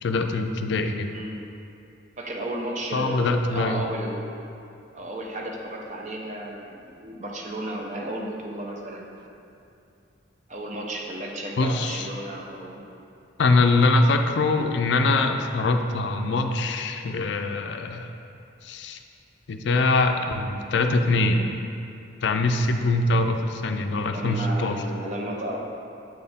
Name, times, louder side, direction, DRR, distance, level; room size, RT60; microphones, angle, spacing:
voice 1, 0.0-1.1 2.9-3.8 11.6-12.1 13.4-18.1 18.6-19.0 19.5-21.5 22.2-24.8, left 2 dB, 65° left, 6 dB, 0.4 m, -23 dB
voice 2, 1.1-1.4 2.2-4.3 4.9-9.1 10.5-12.8 24.1-25.6, right 1 dB, 35° right, 0 dB, 0.6 m, -33 dB
7.6 x 4.3 x 3.5 m, 2.6 s
head